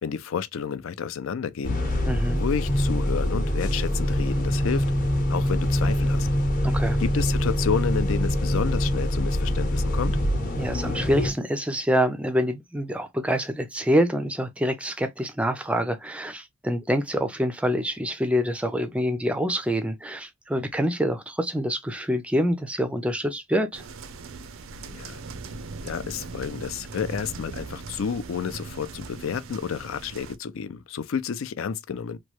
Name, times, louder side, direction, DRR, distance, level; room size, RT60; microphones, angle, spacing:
voice 1, 0.0-1.8 2.3-4.8 5.3-6.3 7.0-10.2 24.8-25.2 25.8-32.2, left 6 dB, 75° left, 0.4 m, -30 dB
sound 1, 1.6-11.3, equal, 40° left, 0.8 m, -24 dB
voice 2, 2.1-2.4 6.6-7.0 10.6-23.8, equal, 5° right, 0.4 m, -26 dB
sound 2, 23.7-30.4, right 3 dB, 75° right, 0.5 m, -39 dB
3.0 x 2.2 x 3.0 m
head